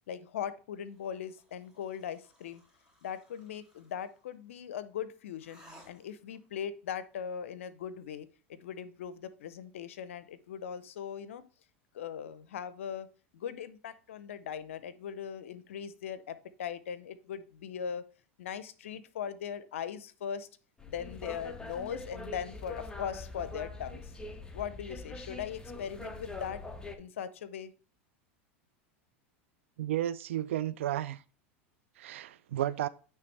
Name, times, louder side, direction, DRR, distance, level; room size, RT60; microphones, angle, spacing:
voice 1, 0.1-2.6 3.0-5.6 5.9-11.4 11.9-13.1 13.3-18.0 18.4-20.5 20.8-24.1 24.5-26.6 27.0-27.7, left 8 dB, 80° left, 0.6 m, -39 dB
sound 1, 0.9-4.3 5.4-6.4, equal, 5° right, 2.8 m, -60 dB
sound 2, 20.8-27.0, left 2 dB, 10° left, 0.8 m, -43 dB
voice 2, 29.8-31.2 32.0-32.9, right 12 dB, 80° right, 0.4 m, -32 dB
9.2 x 3.3 x 3.3 m
hypercardioid pair, 95°, 7 cm